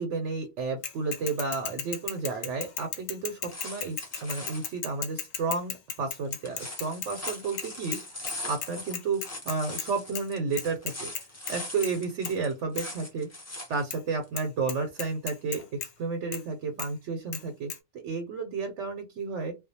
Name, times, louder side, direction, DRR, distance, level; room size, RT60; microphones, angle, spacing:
voice 1, 0.0-11.1 11.5-13.3 13.7-17.7 18.0-19.5, right 4 dB, 80° right, 4 dB, 0.9 m, -32 dB
Bicycle / Mechanisms, 0.8-8.0 8.3-8.4 8.6-9.9 10.1-10.2 10.6-11.5 11.8-12.0 12.2-12.3 12.8-12.9 13.9-14.0 14.4-14.5 14.7-15.9 16.3-16.4 16.8-16.9 17.3-17.4 17.7-17.8, left 7 dB, 60° left, 0.7 m, -35 dB
sound 1, 3.5-4.8 6.3-13.8 14.2-14.3, left 1 dB, 25° left, 0.3 m, -41 dB
2.4 x 2.1 x 2.7 m, 0.23 s
omnidirectional pair, 1.2 m